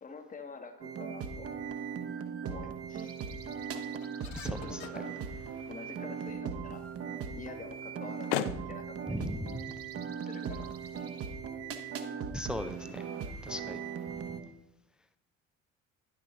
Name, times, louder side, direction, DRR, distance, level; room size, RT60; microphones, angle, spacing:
voice 1, 0.0-1.5 2.4-3.2 4.4-5.4 5.7-6.9 7.3-9.3 10.3-11.4, left 4 dB, 20° left, 7 dB, 1.0 m, -47 dB
sound 1, 0.8-14.4, right 6 dB, 35° right, 0.9 m, -39 dB
sound 2, 1.4-11.8, left 12 dB, 60° left, 0.5 m, -45 dB
voice 2, 4.4-4.8 9.1-9.7 12.3-13.1 13.4-13.8, equal, ahead, 10 dB, 0.3 m, -37 dB
10.5 x 5.9 x 4.0 m, 0.82 s
figure-of-eight pair, 50°, 40 cm